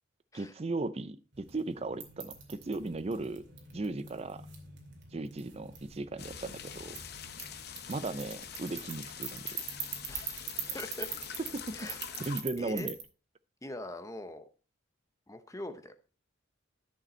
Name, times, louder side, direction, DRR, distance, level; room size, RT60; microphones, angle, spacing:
voice 1, 0.3-3.5 3.7-4.4 5.1-7.0 7.9-9.5 10.7-10.8 11.5-11.9 12.2-13.0, right 2 dB, 30° right, 0.4 m, -37 dB
sound 1, 1.3-13.0, right 7 dB, 55° right, 2.4 m, -44 dB
sound 2, 6.2-12.4, left 8 dB, 50° left, 0.8 m, -45 dB
voice 2, 10.1-11.1 11.7-12.0 12.6-12.9 13.6-14.5 15.3-16.1, left 1 dB, 15° left, 0.8 m, -42 dB
10.5 x 6.7 x 4.3 m
head